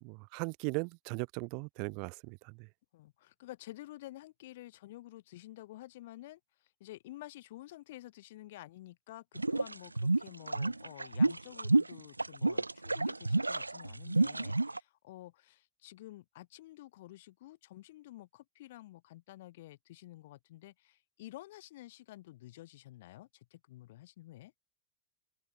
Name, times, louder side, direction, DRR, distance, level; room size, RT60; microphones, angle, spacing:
voice 1, 0.0-2.7, right 37 dB, 45° right, 1.1 m, -38 dB
voice 2, 2.9-24.5, left 16 dB, 55° left, 5.7 m, -51 dB
sound 1, 9.4-14.8, right 2 dB, 85° right, 0.4 m, -29 dB
open air
figure-of-eight pair, 90°, 0 cm